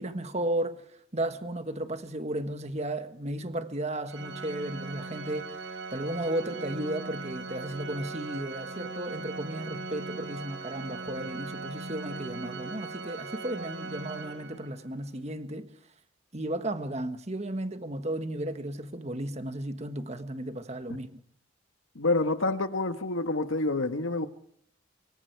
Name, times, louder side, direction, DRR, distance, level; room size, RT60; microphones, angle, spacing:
voice 1, 0.0-15.7 16.3-21.1, right 1 dB, 35° right, 1.5 m, -34 dB
Organ, 4.1-14.9, right 3 dB, 70° right, 4.4 m, -39 dB
voice 2, 21.9-24.3, left 2 dB, 90° left, 1.5 m, -27 dB
25.5 x 23.5 x 4.7 m
head